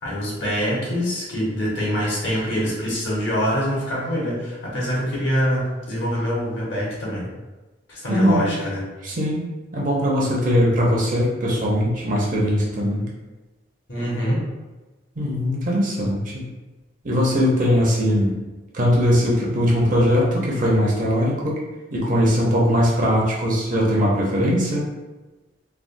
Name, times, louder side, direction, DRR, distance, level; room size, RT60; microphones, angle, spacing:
voice 1, 0.0-7.3 7.9-8.8 13.9-14.4, equal, 70° left, -5 dB, 1.1 m, -24 dB
voice 2, 8.1-8.5 9.0-9.5 9.7-13.1 15.2-16.5 17.0-18.4 18.7-21.6 21.9-24.8, equal, 45° right, -3 dB, 0.7 m, -20 dB
3.3 x 2.2 x 2.6 m, 1.2 s
head